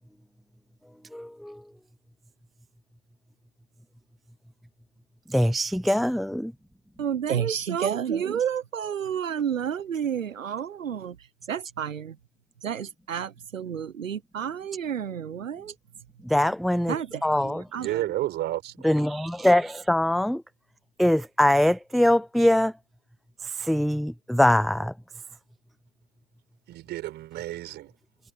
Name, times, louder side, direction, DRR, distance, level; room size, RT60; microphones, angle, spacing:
voice 1, 1.1-1.6 5.3-6.5 16.2-17.0 17.2-17.6 18.8-20.4 21.0-22.7 23.4-24.9, left 1 dB, ahead, 0.5 m, -23 dB
voice 2, 7.0-12.2 12.6-15.7 16.9-18.1, right 8 dB, 85° right, 1.1 m, -30 dB
voice 3, 17.7-18.9 26.7-27.9, right 15 dB, 25° right, 5.5 m, -31 dB
hypercardioid pair, 125°, 38 cm